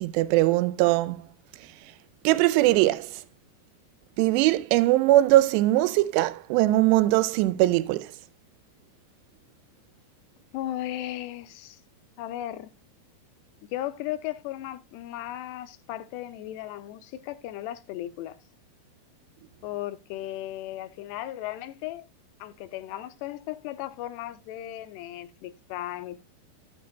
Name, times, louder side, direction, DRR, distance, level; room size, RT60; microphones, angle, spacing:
voice 1, 0.0-1.2 2.2-3.1 4.2-8.1, right 16 dB, 90° right, 2.8 m, -21 dB
voice 2, 10.5-11.8 12.2-12.7 13.7-18.4 19.6-22.1 22.4-26.2, left 14 dB, 90° left, 2.8 m, -36 dB
12.0 x 8.4 x 2.2 m
omnidirectional pair, 4.8 m